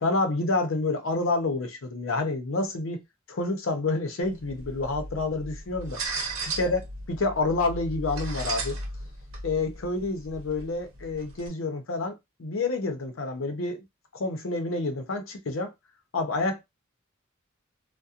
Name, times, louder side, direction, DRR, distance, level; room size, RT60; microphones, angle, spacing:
voice 1, 0.0-3.0 3.3-6.0 6.6-6.8 7.1-8.8 9.4-13.8 14.1-15.7 16.1-16.6, left 3 dB, 85° left, 0.6 m, -28 dB
sound 1, 4.2-11.5, right 2 dB, 90° right, 0.7 m, -36 dB
2.7 x 2.1 x 2.4 m
head